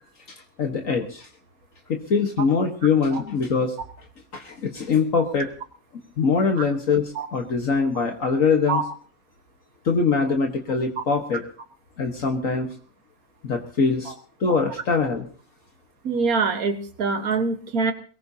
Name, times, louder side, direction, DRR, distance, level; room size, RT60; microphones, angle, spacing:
voice 1, 0.6-1.3 1.9-3.8 4.3-5.5 6.2-8.8 9.9-11.4 12.0-12.7 13.4-14.1 14.4-15.3, left 5 dB, 65° left, 3 dB, 1.9 m, -23 dB
voice 2, 16.1-17.9, right 4 dB, 85° right, 6 dB, 1.8 m, -24 dB
22.5 x 19.0 x 2.9 m, 0.41 s
omnidirectional pair, 1.5 m